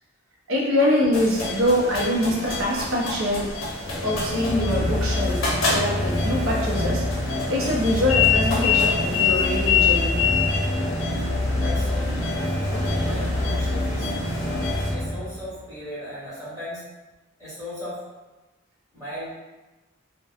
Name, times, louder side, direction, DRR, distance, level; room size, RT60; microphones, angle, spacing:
voice 1, 0.5-3.5 4.0-5.4 5.7-7.0 7.5-10.2, left 1 dB, 85° right, -3 dB, 0.6 m, -24 dB
sound 1, 1.1-14.9, left 6 dB, 90° left, 0.7 m, -27 dB
sound 2, 3.8-15.6, left 1 dB, 30° left, 0.6 m, -26 dB
voice 2, 11.5-12.3 13.0-14.1 14.9-16.8 17.4-18.0 18.9-19.4, equal, 15° right, -12 dB, 1.2 m, -37 dB
2.8 x 2.1 x 2.4 m, 1.1 s
head